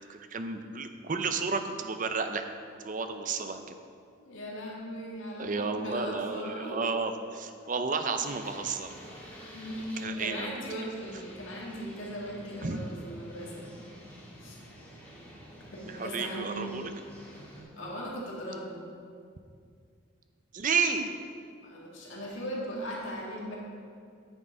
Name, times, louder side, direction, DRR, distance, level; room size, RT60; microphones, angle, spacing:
voice 1, 0.1-2.5 2.8-3.6 5.4-8.9 10.0-10.5 12.6-12.8 16.0-16.9 20.5-21.1, right 4 dB, 40° right, 8 dB, 0.5 m, -31 dB
voice 2, 4.2-6.9 9.5-13.6 14.4-14.6 15.6-16.8 17.8-18.9 21.6-23.6, equal, 65° left, -4 dB, 2.1 m, -38 dB
sound 1, 8.2-17.6, equal, 10° left, 1.9 m, -49 dB
9.1 x 6.4 x 4.9 m, 2.3 s
head